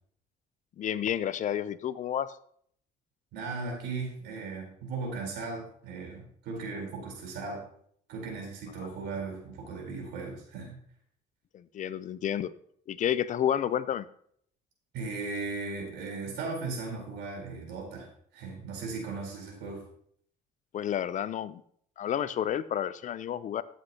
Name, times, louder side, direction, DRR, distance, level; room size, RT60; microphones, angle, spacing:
voice 1, 0.8-2.3 11.5-12.5 12.9-14.1 20.7-21.6 22.0-23.6, left 10 dB, 50° left, 16 dB, 0.5 m, -30 dB
voice 2, 3.3-7.6 8.1-10.8 14.9-19.8, right 4 dB, 85° right, 0 dB, 4.0 m, -37 dB
12.5 x 8.2 x 2.9 m, 0.63 s
cardioid pair, 110°, 17 cm